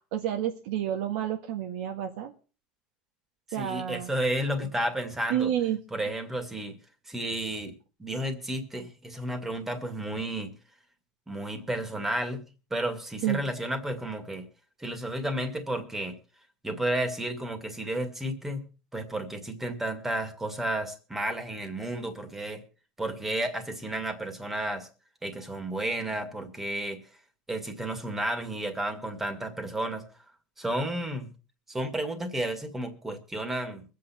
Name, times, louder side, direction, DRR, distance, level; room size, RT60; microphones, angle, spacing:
voice 1, 0.1-2.3 3.5-4.1 4.6-4.7 5.3-5.8 13.2-13.5, right 10 dB, 80° right, 2 dB, 1.7 m, -29 dB
voice 2, 3.5-5.5 5.9-6.8 7.1-10.5 11.3-12.4 12.7-14.5 14.8-16.1 16.6-18.6 18.9-22.6 23.0-24.9 25.2-27.0 27.5-30.1 30.6-31.3 31.7-33.8, right 1 dB, 10° right, 7 dB, 2.2 m, -32 dB
23.5 x 8.5 x 4.4 m, 0.36 s
cardioid pair, 150°, 3 cm